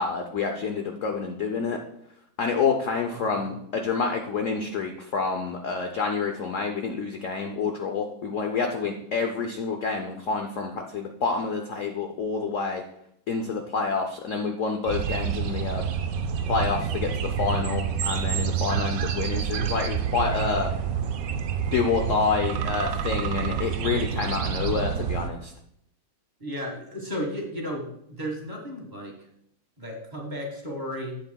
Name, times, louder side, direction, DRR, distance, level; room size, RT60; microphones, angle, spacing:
voice 1, 0.0-1.8 2.4-12.8 13.3-15.8 16.5-20.7 21.7-25.5, left 5 dB, 65° left, 4 dB, 0.7 m, -28 dB
voice 2, 3.1-3.5 26.4-29.2 29.8-31.2, equal, 25° right, 0 dB, 1.6 m, -34 dB
sound 1, 14.9-25.3, right 7 dB, 70° right, 0.8 m, -28 dB
11.5 x 7.8 x 2.3 m, 0.73 s
omnidirectional pair, 2.1 m